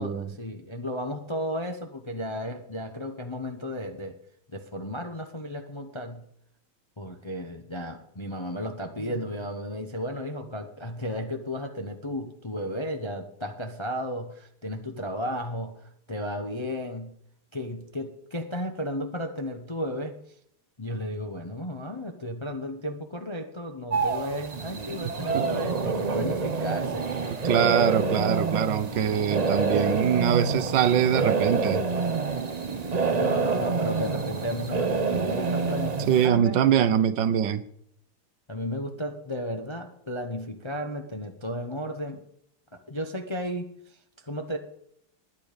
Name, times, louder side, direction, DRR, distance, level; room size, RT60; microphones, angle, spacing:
voice 1, 0.0-4.2 4.5-6.2 7.0-17.1 17.5-20.1 20.8-27.1 33.1-36.6 38.5-42.2 42.9-44.6, equal, 25° left, 5 dB, 0.6 m, -34 dB
sound 1, 23.9-36.3, right 4 dB, 55° right, 0.4 m, -27 dB
voice 2, 27.4-31.8 36.1-37.6, right 9 dB, 70° right, 13 dB, 1.4 m, -23 dB
20.5 x 9.3 x 5.2 m, 0.71 s
omnidirectional pair, 2.1 m